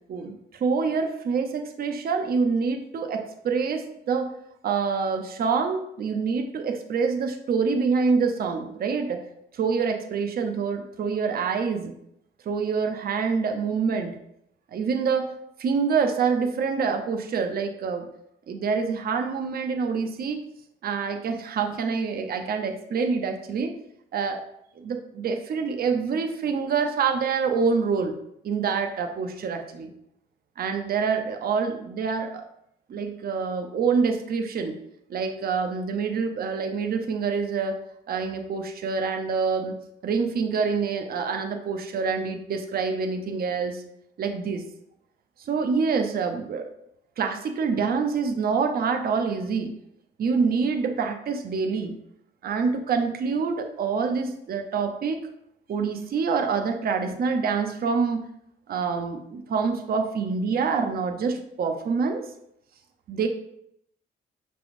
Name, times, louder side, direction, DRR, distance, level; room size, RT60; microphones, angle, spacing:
voice 1, 0.1-4.3 4.6-9.2 9.5-11.9 12.5-14.2 14.7-15.3 15.6-18.1 18.5-20.4 20.8-23.7 24.1-24.4 24.8-28.1 28.4-29.9 30.6-32.4 32.9-34.8 35.1-37.8 38.1-39.8 40.0-43.8 44.2-44.6 45.5-46.7 47.2-49.7 50.2-51.9 52.4-55.2 55.7-58.3 58.7-62.3 63.1-63.3, right 5 dB, 50° right, 5 dB, 0.6 m, -26 dB
5.9 x 3.4 x 2.5 m, 0.74 s
cardioid pair, 90°, 20 cm